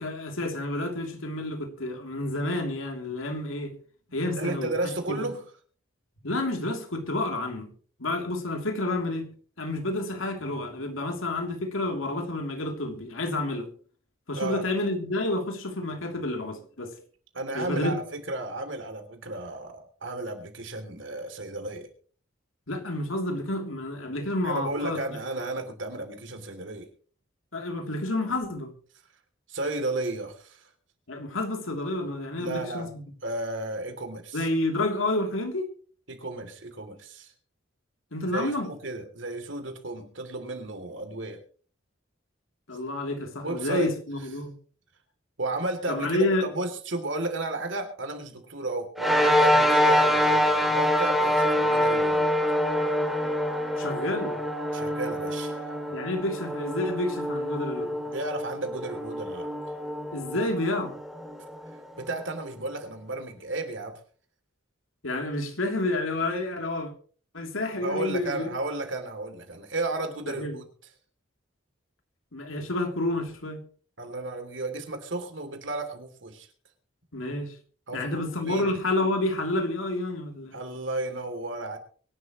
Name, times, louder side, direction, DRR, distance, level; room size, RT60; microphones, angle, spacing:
voice 1, 0.0-3.7 4.1-4.7 5.2-5.3 6.2-7.7 8.0-9.3 9.6-13.7 14.3-16.9 17.5-18.0 22.7-25.2 27.5-28.7 31.1-32.9 34.3-35.7 38.1-38.7 42.7-44.6 45.9-46.4 53.8-54.4 55.9-58.0 60.1-60.9 65.0-66.9 67.3-68.5 70.3-70.6 72.3-73.6 77.1-77.6 77.9-80.6, left 2 dB, 85° left, 3.2 m, -29 dB
voice 2, 4.4-5.4 14.3-14.6 17.3-21.9 24.4-26.9 29.5-30.7 32.4-32.9 33.2-34.5 36.1-37.3 38.3-41.4 43.4-43.9 45.4-52.3 54.7-55.7 58.1-59.5 61.7-64.0 67.8-70.6 74.0-76.5 77.9-78.7 80.5-81.8, right 2 dB, 65° right, 3.1 m, -33 dB
sound 1, 49.0-61.7, equal, ahead, 2.8 m, -25 dB
24.0 x 11.5 x 3.1 m
head